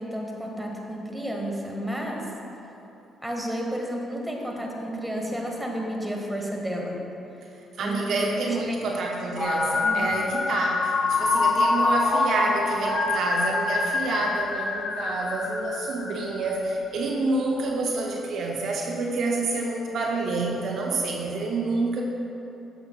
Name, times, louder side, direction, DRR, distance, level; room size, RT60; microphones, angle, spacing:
voice 1, 0.0-2.3 3.2-7.0 7.8-8.8 9.8-10.2, equal, 5° right, -1 dB, 1.5 m, -31 dB
voice 2, 7.8-22.0, right 3 dB, 60° right, 0 dB, 0.7 m, -28 dB
sound 1, 9.4-16.6, left 3 dB, 40° left, 0.5 m, -25 dB
12.0 x 6.9 x 2.4 m, 2.9 s
hypercardioid pair, 45°, 0 cm